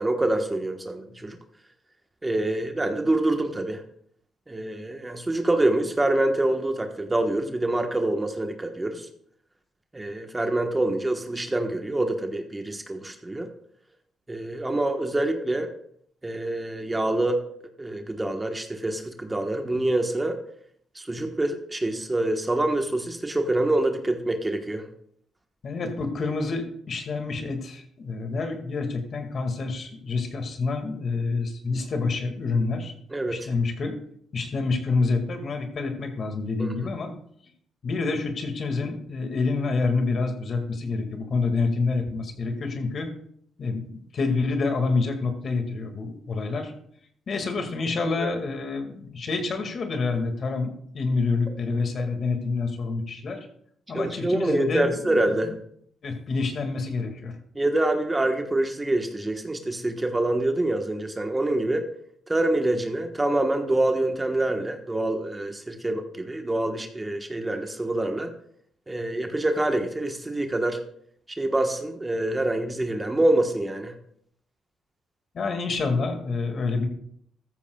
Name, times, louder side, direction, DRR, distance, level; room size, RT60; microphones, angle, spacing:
voice 1, 0.0-1.4 2.2-3.8 4.5-9.1 9.9-13.5 14.3-15.7 16.2-17.4 17.8-20.4 20.9-24.9 33.1-33.4 36.6-36.7 48.2-48.3 53.9-55.5 57.5-61.9 62.3-68.3 68.9-70.8 71.4-73.9, right 1 dB, 15° right, 5 dB, 1.2 m, -26 dB
voice 2, 25.6-32.9 33.3-34.0 34.3-37.1 37.8-43.1 43.6-46.7 47.3-53.4 53.9-55.2 56.0-57.4 75.3-76.9, left 3 dB, 50° left, 5 dB, 2.0 m, -27 dB
14.0 x 13.5 x 2.3 m, 0.66 s
cardioid pair, 90°, 0 cm